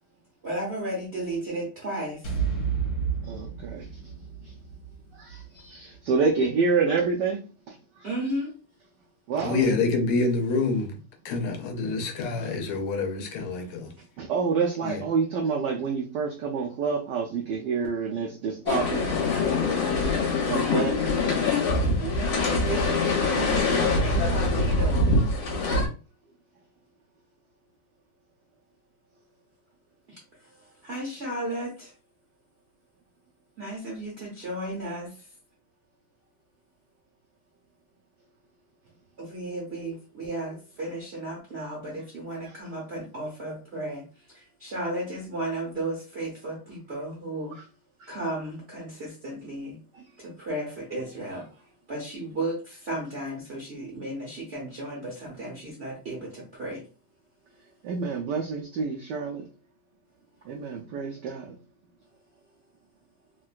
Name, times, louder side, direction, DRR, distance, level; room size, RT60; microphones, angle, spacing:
voice 1, 0.4-2.3 8.0-8.5 22.0-25.1 25.6-25.7 30.1-31.9 33.6-35.3 39.2-47.6 48.1-49.8 50.2-51.5 51.9-56.8, right 1 dB, 60° right, 0.6 m, -34 dB
sound 1, 2.2-6.5, right 6 dB, 55° left, 1.6 m, -32 dB
voice 2, 3.2-4.1 4.4-4.5 5.1-8.1 9.3-9.6 11.8-11.9 12.4-12.5 14.2-19.1 20.5-21.0 42.4-42.5 48.0-48.1 49.9-50.1 57.8-59.4 60.4-61.6, right 5 dB, 85° right, 0.9 m, -28 dB
voice 3, 9.4-13.9 14.8-15.0, left 3 dB, 85° left, 1.6 m, -27 dB
sound 2, 18.7-25.9, left 3 dB, 70° left, 1.6 m, -24 dB
3.6 x 2.2 x 2.4 m
omnidirectional pair, 2.4 m